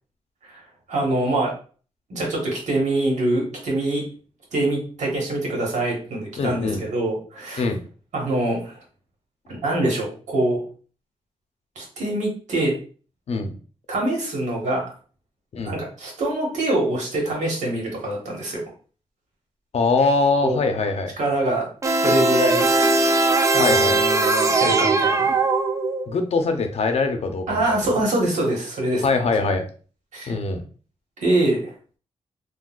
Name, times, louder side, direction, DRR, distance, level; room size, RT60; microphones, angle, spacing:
voice 1, 0.9-1.5 2.1-4.0 4.5-7.7 8.1-8.8 9.5-10.6 11.7-12.7 13.9-14.8 15.6-18.6 20.4-20.6 21.2-21.7 22.0-22.7 23.5-25.4 27.5-29.0 30.1-30.3 31.2-31.7, right 1 dB, 85° right, -1 dB, 1.2 m, -24 dB
voice 2, 6.4-6.8 7.6-7.8 13.3-13.5 15.5-15.8 19.7-21.1 23.6-24.0 26.1-27.6 29.0-29.6 30.3-30.6, left 3 dB, 60° left, 5 dB, 0.6 m, -22 dB
sound 1, 21.8-26.2, right 3 dB, 25° right, 0.4 m, -19 dB
3.7 x 2.3 x 2.4 m, 0.40 s
cardioid pair, 80°, 12 cm